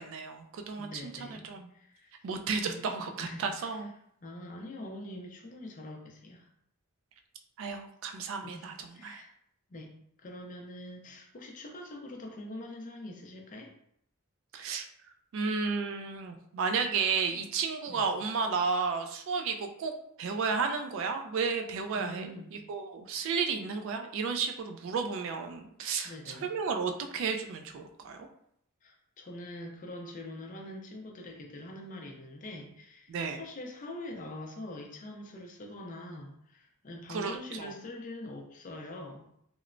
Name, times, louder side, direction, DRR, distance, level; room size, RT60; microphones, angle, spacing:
voice 1, 0.0-1.7 2.2-3.9 7.6-8.7 9.0-9.2 14.5-14.9 15.3-19.9 20.2-22.3 22.7-28.3 33.1-33.4 37.1-37.7, right 5 dB, 60° right, 5 dB, 0.3 m, -33 dB
voice 2, 0.8-1.4 1.7-2.3 2.7-3.8 4.2-6.5 8.4-9.3 9.7-9.9 10.2-13.7 17.9-18.1 21.9-22.5 26.0-26.5 28.8-39.4, left 1 dB, 35° left, 1 dB, 0.4 m, -44 dB
3.0 x 2.0 x 2.5 m, 0.71 s
head